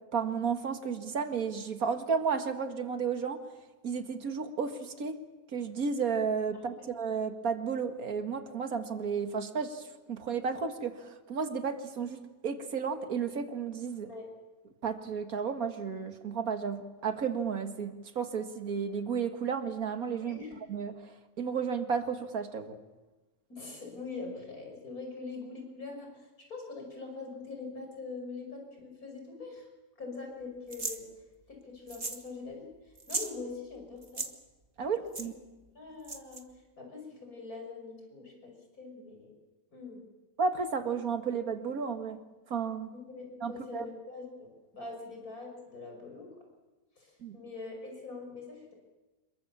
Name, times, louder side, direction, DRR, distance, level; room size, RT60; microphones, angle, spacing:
voice 1, 0.1-3.4 3.8-5.2 5.5-14.1 14.8-20.4 20.7-22.8 34.8-35.3 40.4-42.2 42.5-42.9 43.4-43.8 47.2-47.4, right 6 dB, 80° right, 7 dB, 2.2 m, -33 dB
voice 2, 20.2-20.6 23.5-29.7 30.0-31.1 31.5-34.3 34.9-35.3 35.7-36.5 36.8-39.3 39.7-40.0 42.9-46.3 47.0-48.7, left 4 dB, 85° left, 2 dB, 6.2 m, -43 dB
sound 1, 30.7-31.0 31.9-32.3 32.5-32.6 33.0-33.3 34.0-34.3 35.1-35.3 36.0-36.4, right 3 dB, 30° right, 1.8 m, -36 dB
27.5 x 22.5 x 7.2 m, 1.1 s
omnidirectional pair, 1.5 m